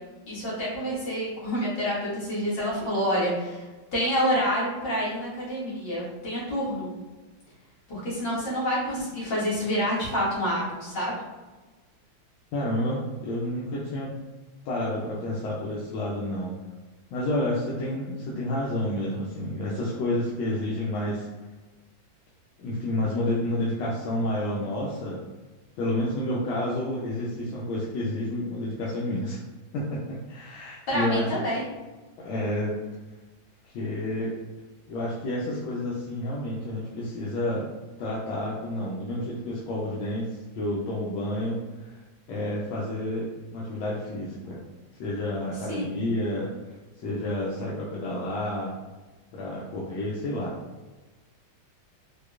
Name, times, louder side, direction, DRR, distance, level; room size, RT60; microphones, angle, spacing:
voice 1, 0.3-3.6 3.9-6.9 7.9-11.1 30.9-31.6 45.7-45.9, equal, 55° left, -9 dB, 2.1 m, -28 dB
voice 2, 12.5-14.1 14.6-16.5 17.1-21.3 22.6-25.2 25.8-29.4 29.7-31.4 32.2-32.8 33.7-34.3 34.9-37.7 38.0-42.0 42.3-44.6 45.0-48.7 49.3-50.6, left 1 dB, 80° left, -5 dB, 1.4 m, -30 dB
4.7 x 2.2 x 2.4 m, 1.2 s
omnidirectional pair, 2.2 m